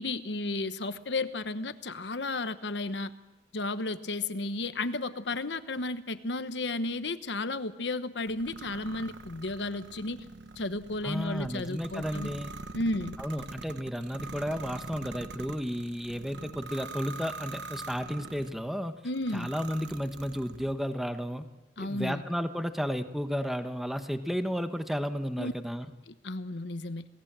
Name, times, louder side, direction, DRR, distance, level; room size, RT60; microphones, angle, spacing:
voice 1, 0.0-3.1 3.5-10.2 10.6-12.3 12.7-13.2 19.0-19.5 21.8-22.2 25.4-25.5 26.1-27.1, left 2 dB, 75° left, 12 dB, 1.1 m, -33 dB
sound 1, 8.3-18.6 19.1-20.8, right 3 dB, 75° right, 1.2 m, -44 dB
voice 2, 11.0-12.5 13.2-18.9 19.3-21.5 21.8-25.9, equal, ahead, 8 dB, 1.2 m, -33 dB
27.0 x 18.0 x 7.6 m, 1.1 s
head